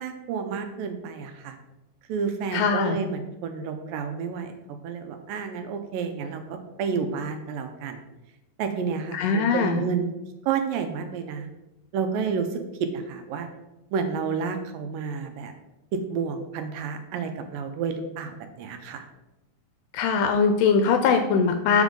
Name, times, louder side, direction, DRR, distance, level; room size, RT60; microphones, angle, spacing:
voice 1, 0.0-1.6 2.1-4.6 4.8-8.0 8.6-10.1 10.4-11.5 11.9-13.5 13.9-15.5 15.9-19.0, right 6 dB, 80° right, 6 dB, 2.3 m, -30 dB
voice 2, 2.5-3.0 9.1-9.8 19.9-21.8, left 5 dB, 80° left, 6 dB, 2.0 m, -21 dB
7.2 x 7.1 x 3.7 m, 0.95 s
omnidirectional pair, 4.3 m